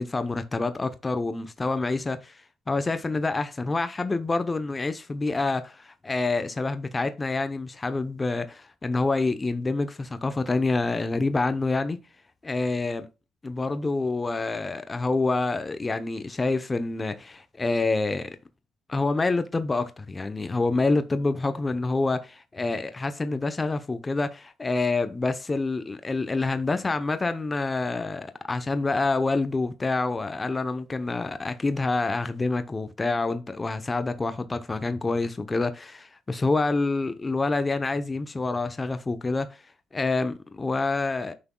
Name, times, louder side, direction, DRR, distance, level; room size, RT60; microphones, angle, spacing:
voice 1, 0.0-12.0 12.4-13.1 13.4-18.3 18.9-39.5 39.9-41.3, left 3 dB, 25° left, 0.7 m, -27 dB
9.5 x 6.0 x 2.2 m
cardioid pair, 90°, 0 cm